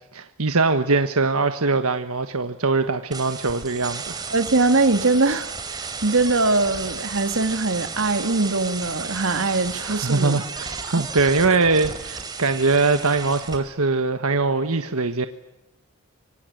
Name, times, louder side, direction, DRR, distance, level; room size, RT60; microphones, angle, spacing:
voice 1, 0.1-4.3 9.7-15.3, right 3 dB, 85° right, 1.4 m, -22 dB
sound 1, 3.1-13.6, right 4 dB, 20° right, 3.3 m, -33 dB
voice 2, 4.3-10.4, right 3 dB, 65° right, 1.9 m, -22 dB
26.0 x 24.0 x 9.5 m
head